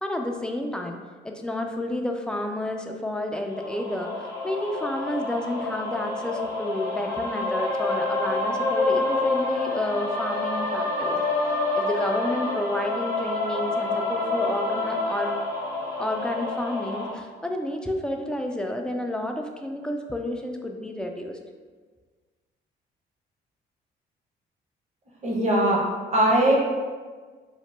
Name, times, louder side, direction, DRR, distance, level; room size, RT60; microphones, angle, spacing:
voice 1, 0.0-1.0 1.2-11.2 11.7-15.3 16.0-21.4, left 1 dB, 5° left, 3 dB, 0.3 m, -30 dB
sound 1, 3.5-17.1, left 2 dB, 60° left, 0.8 m, -28 dB
voice 2, 25.2-25.8 26.1-26.6, right 1 dB, 30° right, -3 dB, 0.9 m, -20 dB
2.9 x 2.0 x 3.2 m, 1.5 s
supercardioid pair, 55°, 21 cm